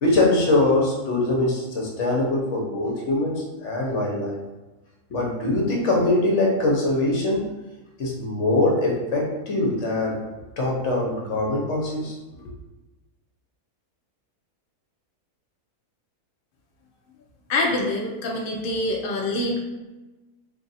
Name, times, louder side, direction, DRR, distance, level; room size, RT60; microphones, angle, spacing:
voice 1, 0.0-4.4 5.1-7.4 8.0-10.2 10.6-12.2, left 2 dB, 55° left, -2 dB, 1.0 m, -22 dB
voice 2, 17.5-19.6, left 2 dB, 85° left, -1 dB, 0.4 m, -25 dB
2.7 x 2.5 x 3.9 m, 1.1 s
omnidirectional pair, 1.7 m